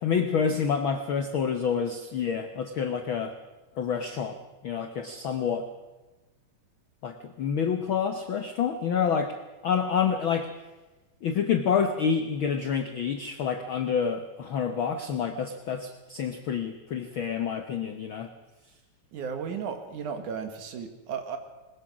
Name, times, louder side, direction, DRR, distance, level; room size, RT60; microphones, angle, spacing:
voice 1, 0.0-3.3 3.8-4.4 4.6-5.7 7.0-9.3 9.6-10.5 11.2-18.3, left 7 dB, 85° left, 7 dB, 1.1 m, -28 dB
voice 2, 19.1-21.4, right 6 dB, 65° right, 7 dB, 3.1 m, -34 dB
20.5 x 20.5 x 6.2 m, 1.1 s
omnidirectional pair, 3.9 m